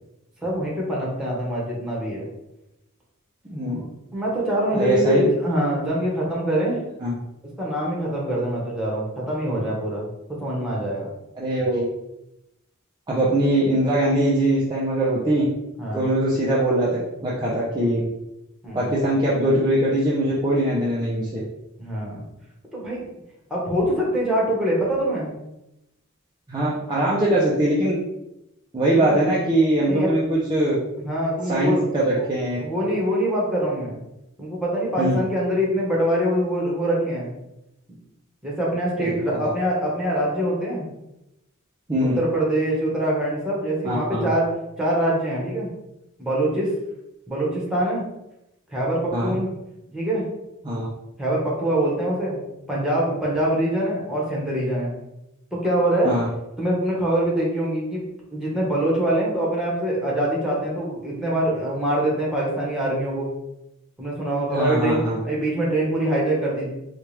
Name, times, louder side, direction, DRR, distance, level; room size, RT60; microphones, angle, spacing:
voice 1, 0.4-2.3 4.1-6.8 7.6-11.1 15.8-16.1 18.6-18.9 21.8-22.2 22.7-23.1 23.5-25.3 28.9-29.3 29.8-30.1 31.0-31.9 32.2-32.3 32.6-34.0 34.4-37.3 38.4-40.8 42.0-44.5 44.8-45.7 46.2-46.7 47.3-48.0 48.7-49.5 49.9-50.2 51.2-52.4 52.7-54.9 55.5-56.1 56.6-58.0 58.3-63.3 64.0-66.7, right 1 dB, 5° right, -5 dB, 1.2 m, -24 dB
voice 2, 3.5-3.9 4.7-5.2 7.0-7.1 11.4-11.8 13.1-15.4 15.9-18.0 18.7-21.4 26.5-28.0 28.7-30.8 31.4-32.6 35.0-35.2 39.0-39.5 41.9-42.2 43.8-44.3 49.1-49.3 50.6-50.9 56.0-56.3 64.5-65.2, right 1 dB, 20° right, -7 dB, 0.6 m, -22 dB
4.5 x 2.4 x 3.3 m, 0.88 s
head